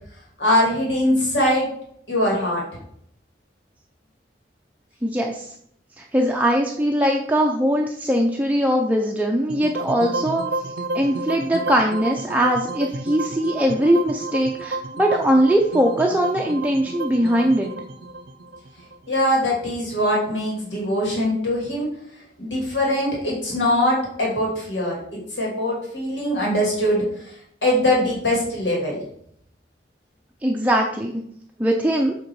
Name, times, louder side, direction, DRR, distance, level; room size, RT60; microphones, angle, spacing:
voice 1, 0.4-1.7 2.1-2.6 19.1-21.9 22.4-24.9 25.3-27.3 27.6-29.0, left 1 dB, 85° left, -3 dB, 2.7 m, -22 dB
voice 2, 5.0-5.5 6.0-10.4 10.9-17.7 30.4-31.1 31.6-32.2, equal, 10° right, 0 dB, 0.5 m, -21 dB
sound 1, 9.5-19.7, right 2 dB, 60° right, 0.6 m, -31 dB
7.7 x 3.6 x 4.7 m, 0.69 s
head